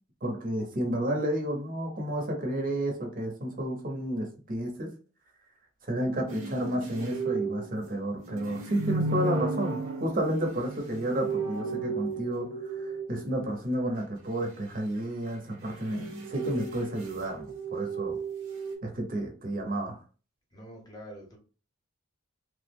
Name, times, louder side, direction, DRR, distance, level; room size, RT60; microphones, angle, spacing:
voice 1, 0.2-4.9 5.8-16.0 16.3-18.2 18.8-20.0, right 1 dB, 40° right, 1 dB, 0.8 m, -31 dB
sound 1, 6.3-13.5 15.4-18.7, right 3 dB, 70° right, 1.0 m, -34 dB
voice 2, 20.5-21.4, equal, 20° left, 0 dB, 0.8 m, -45 dB
3.3 x 2.1 x 3.4 m, 0.38 s
head